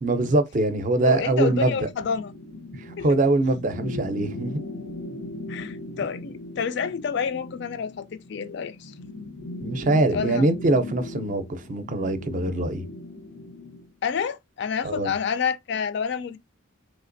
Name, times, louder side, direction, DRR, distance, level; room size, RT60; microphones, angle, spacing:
voice 1, 0.0-1.9 2.8-4.6 9.6-12.9 14.8-15.1, right 2 dB, 40° right, 0.5 m, -23 dB
voice 2, 1.0-2.3 3.0-3.1 5.5-8.9 10.1-10.5 14.0-16.4, left 6 dB, 60° left, 0.4 m, -29 dB
sound 1, 1.5-13.9, left 2 dB, 80° left, 0.8 m, -38 dB
3.2 x 2.9 x 2.5 m
head